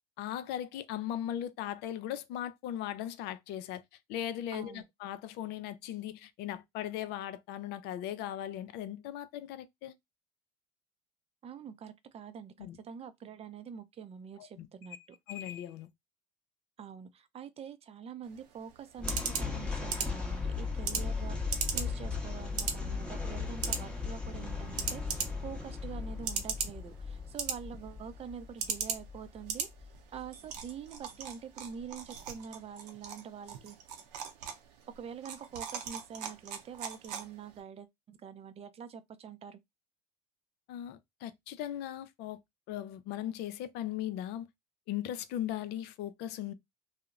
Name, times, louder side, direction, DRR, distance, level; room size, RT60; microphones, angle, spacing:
voice 1, 0.2-3.8 4.1-9.9 12.6-12.8 14.4-14.7 15.3-15.9 40.7-42.4 42.7-44.5 44.9-46.5, left 11 dB, 55° left, 0.4 m, -38 dB
voice 2, 4.5-4.8 11.4-15.0 16.8-29.7 30.1-33.8 35.0-39.6, right 7 dB, 30° right, 0.4 m, -45 dB
sound 1, 18.2-37.6, right 7 dB, 80° right, 0.6 m, -40 dB
sound 2, 19.0-30.3, left 4 dB, 5° left, 0.8 m, -37 dB
2.7 x 2.0 x 2.3 m
hypercardioid pair, 70°, 21 cm